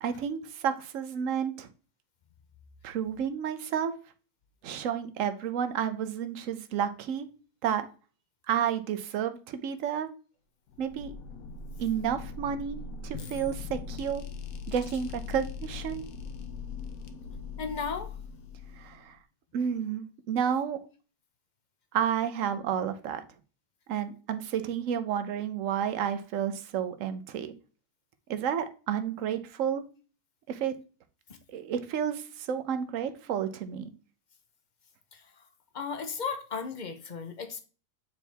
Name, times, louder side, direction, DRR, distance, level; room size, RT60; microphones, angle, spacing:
voice 1, 0.0-1.7 2.8-3.9 4.6-7.3 7.6-7.9 8.5-10.1 10.8-11.2 11.8-14.2 14.7-16.0 18.8-19.1 19.5-20.8 21.9-23.2 23.9-27.5 28.3-29.8 30.5-30.7 31.5-33.9, right 8 dB, 60° right, 1.0 m, -31 dB
sound 1, 10.7-19.2, left 5 dB, 65° left, 1.3 m, -40 dB
voice 2, 17.6-18.1 31.3-31.4 35.1-35.2 35.7-37.6, left 5 dB, 40° left, 0.7 m, -35 dB
8.2 x 4.4 x 3.4 m
omnidirectional pair, 1.7 m